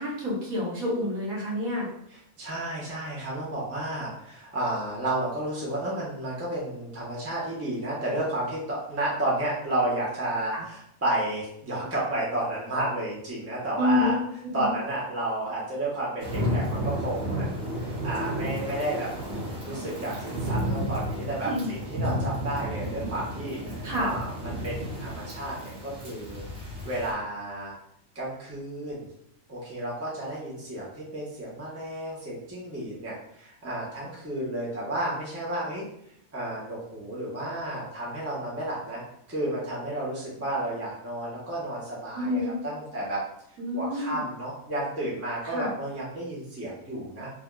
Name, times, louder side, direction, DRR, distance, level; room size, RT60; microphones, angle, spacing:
voice 1, 0.0-1.9 10.5-10.6 13.8-14.2 14.5-14.8 21.4-21.7 23.8-24.1 42.1-42.6 43.6-44.2 45.5-45.7, left 2 dB, 75° right, -5 dB, 1.3 m, -28 dB
voice 2, 2.4-14.2 14.5-19.1 19.6-27.8 28.1-29.1 29.5-35.9 36.3-39.0 39.3-43.2 43.7-47.3, right 1 dB, 15° right, -7 dB, 0.7 m, -32 dB
sound 1, 16.2-27.1, equal, 55° right, 1.2 m, -32 dB
3.5 x 2.4 x 2.2 m, 0.74 s
omnidirectional pair, 1.5 m